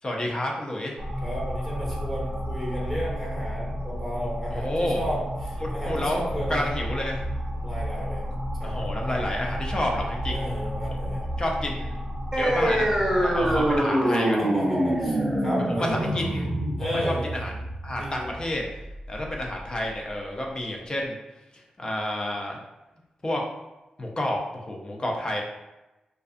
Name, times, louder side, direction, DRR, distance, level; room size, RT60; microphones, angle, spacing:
voice 1, 0.0-1.0 4.5-5.0 5.6-6.2 6.5-7.2 8.6-10.5 11.4-12.0 12.3-12.9 13.2-14.4 15.8-16.5 17.0-17.5 17.8-18.6 19.1-21.2 21.8-22.6 23.2-23.4 24.0-25.4, left 1 dB, 35° left, 0 dB, 0.5 m, -29 dB
sound 1, 1.0-13.8, equal, 50° right, 0.5 m, -32 dB
voice 2, 1.2-6.6 7.6-8.2 8.6-9.2 10.3-11.2 13.4-13.6 14.4-15.2 15.4-16.1 16.8-17.3 17.9-18.3, equal, 15° left, -5 dB, 1.1 m, -33 dB
sound 2, 12.3-19.3, right 1 dB, 20° right, 0.7 m, -25 dB
2.4 x 2.3 x 2.4 m, 1.0 s
cardioid pair, 75°, 3 cm